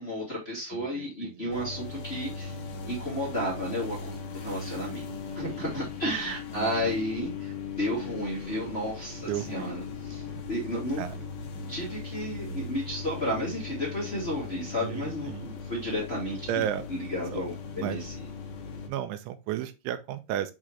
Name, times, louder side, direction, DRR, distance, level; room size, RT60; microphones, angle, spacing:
voice 1, 0.0-2.6 2.8-5.0 5.3-11.0 11.7-16.4 16.9-18.1, equal, 25° left, 1.3 m, -32 dB
voice 2, 0.7-1.6 4.5-5.5 6.2-6.3 6.5-7.0 9.3-9.7 11.0-11.2 14.8-15.5 16.5-16.8 17.3-17.4 17.8-18.0 18.9-20.5, right 11 dB, 85° right, 3.2 m, -34 dB
sound 1, 1.5-18.9, left 5 dB, 70° left, 2.4 m, -39 dB
7.8 x 3.8 x 3.2 m
omnidirectional pair, 5.3 m